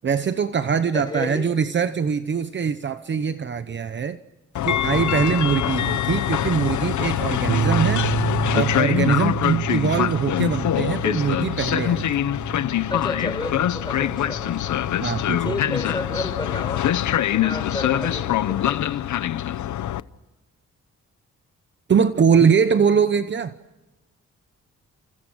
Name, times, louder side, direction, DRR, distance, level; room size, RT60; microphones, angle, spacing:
voice 1, 0.0-4.2 4.6-8.1 8.5-12.1 15.0-15.5 21.9-23.5, right 6 dB, 40° right, 0.9 m, -22 dB
voice 2, 0.9-1.5 12.9-14.9 15.4-19.0, left 2 dB, 15° left, 5.7 m, -32 dB
Train, 4.5-20.0, left 11 dB, 85° left, 0.9 m, -24 dB
sound 1, 7.5-15.9, right 8 dB, 60° right, 1.7 m, -30 dB
29.0 x 28.5 x 6.4 m
wide cardioid pair, 165°, 29 cm